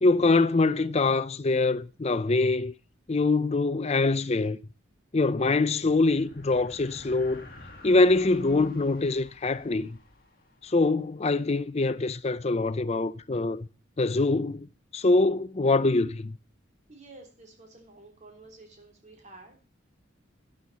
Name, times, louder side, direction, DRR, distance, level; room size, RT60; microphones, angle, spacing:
voice 1, 0.0-2.7 3.1-4.6 5.1-7.4 7.8-10.0 10.6-13.7 14.0-14.7 14.9-16.4, left 3 dB, 35° left, 0.6 m, -24 dB
sound 1, 5.5-11.1, left 2 dB, 50° left, 2.0 m, -50 dB
voice 2, 16.9-19.7, right 2 dB, 40° right, 3.3 m, -51 dB
11.5 x 11.0 x 4.2 m
head